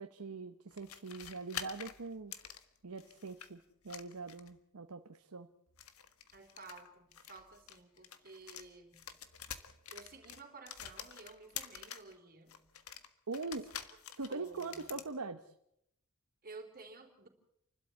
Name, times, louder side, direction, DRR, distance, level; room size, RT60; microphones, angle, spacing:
voice 1, 0.0-2.3 2.8-5.5 13.3-13.7 14.2-15.5, right 3 dB, 85° right, 8 dB, 1.0 m, -42 dB
sound 1, 0.7-3.5 3.9-4.6 5.7-8.7 8.9-12.1 12.5-15.1, left 9 dB, 75° left, 1.6 m, -48 dB
voice 2, 6.3-9.2 9.9-12.6 14.3-15.0 16.4-17.3, right 3 dB, 40° right, 4 dB, 3.5 m, -53 dB
29.5 x 12.5 x 8.4 m, 0.78 s
head